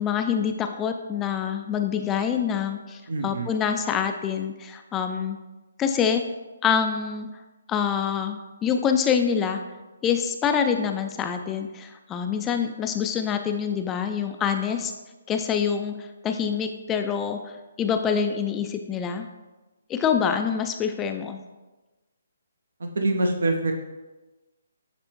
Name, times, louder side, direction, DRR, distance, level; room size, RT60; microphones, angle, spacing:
voice 1, 0.0-5.4 5.8-6.2 6.6-7.3 7.7-9.6 10.0-14.9 15.3-19.3 19.9-21.4, left 7 dB, 15° left, 6 dB, 0.4 m, -26 dB
voice 2, 3.1-3.5 22.8-23.7, right 2 dB, 70° right, 4 dB, 0.7 m, -25 dB
9.9 x 3.3 x 3.0 m, 1.1 s
figure-of-eight pair, 145°, 0 cm